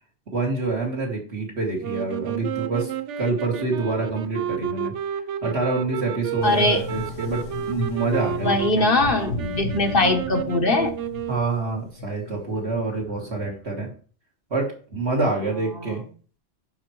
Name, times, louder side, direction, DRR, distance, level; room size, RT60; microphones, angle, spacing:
voice 1, 0.3-2.9 3.2-4.9 5.4-8.9 11.3-13.9 14.5-16.0, right 3 dB, 65° right, -1 dB, 2.5 m, -26 dB
sound 1, 1.8-11.8, right 9 dB, 85° right, 1.0 m, -31 dB
sound 2, 6.4-13.9, left 2 dB, 90° left, 1.4 m, -35 dB
voice 2, 6.4-6.8 8.4-10.9, left 2 dB, 50° left, 5 dB, 1.2 m, -21 dB
11.5 x 4.8 x 3.1 m, 0.41 s
omnidirectional pair, 1.2 m